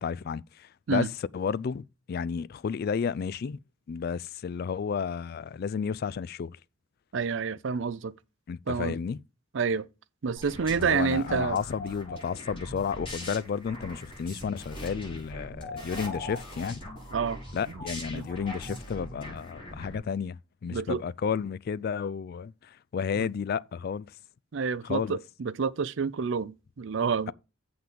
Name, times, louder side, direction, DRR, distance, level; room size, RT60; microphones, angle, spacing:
voice 1, 0.0-3.6 3.9-6.6 8.5-9.2 10.7-16.8 17.5-24.1 24.8-25.2, left 6 dB, 50° left, 0.3 m, -32 dB
voice 2, 7.1-8.1 8.7-9.0 9.5-9.9 10.2-11.6 17.1-17.4 17.7-17.8 18.1-18.3 20.7-21.0 23.1-23.3 24.5-27.3, right 5 dB, 65° right, 0.5 m, -28 dB
sound 1, 10.4-20.0, left 1 dB, 25° left, 5.9 m, -40 dB
7.8 x 5.8 x 5.1 m
head